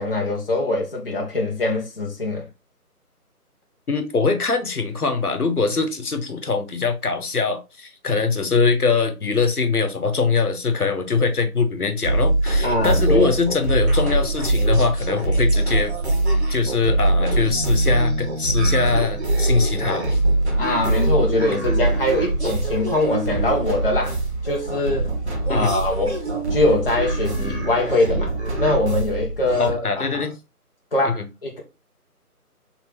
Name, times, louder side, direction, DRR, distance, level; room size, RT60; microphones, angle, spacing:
voice 1, 0.0-2.5 12.6-13.3 20.6-24.2 24.4-25.1 25.5-26.2 26.5-30.2 30.9-31.6, left 2 dB, 40° left, 0.7 m, -23 dB
voice 2, 3.9-15.9 16.5-20.2 25.5-25.7 29.6-30.3 31.0-31.2, left 4 dB, 70° left, 1.1 m, -22 dB
sound 1, 12.0-29.7, right 2 dB, 45° right, 1.2 m, -22 dB
4.4 x 3.4 x 2.9 m
figure-of-eight pair, 160°, 46 cm